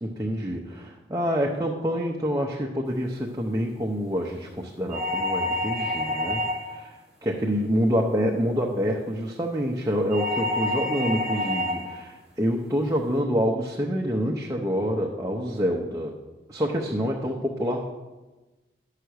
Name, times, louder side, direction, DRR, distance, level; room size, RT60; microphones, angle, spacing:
voice 1, 0.0-6.4 6.7-7.0 7.2-16.1 16.5-17.9, equal, 20° right, -1 dB, 0.7 m, -27 dB
sound 1, 4.9-6.8 10.1-11.9, left 1 dB, 5° right, 1.6 m, -28 dB
11.5 x 5.7 x 6.4 m, 1.2 s
head